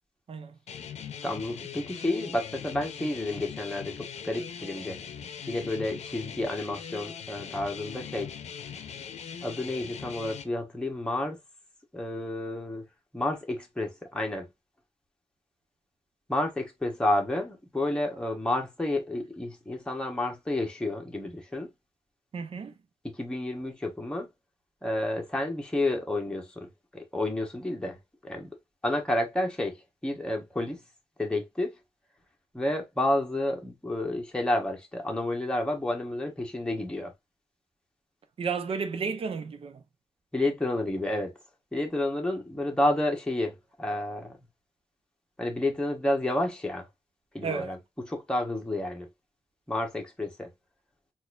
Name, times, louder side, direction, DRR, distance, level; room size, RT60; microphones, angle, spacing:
voice 1, 0.3-0.6 22.3-22.7 38.4-39.8 47.4-47.7, right 5 dB, 55° right, 0.7 m, -32 dB
sound 1, 0.7-10.4, left 7 dB, 70° left, 0.6 m, -41 dB
voice 2, 1.2-5.0 5.5-8.3 9.4-11.4 11.9-12.8 13.1-14.4 16.3-21.7 23.0-24.3 24.8-28.0 28.2-28.5 28.8-29.8 30.0-30.8 31.2-31.7 32.5-37.1 40.3-41.3 41.7-44.4 45.4-46.9 47.3-47.8 48.1-49.1 49.7-50.5, left 1 dB, 10° left, 1.1 m, -30 dB
4.0 x 2.6 x 2.4 m
cardioid pair, 105°, 12 cm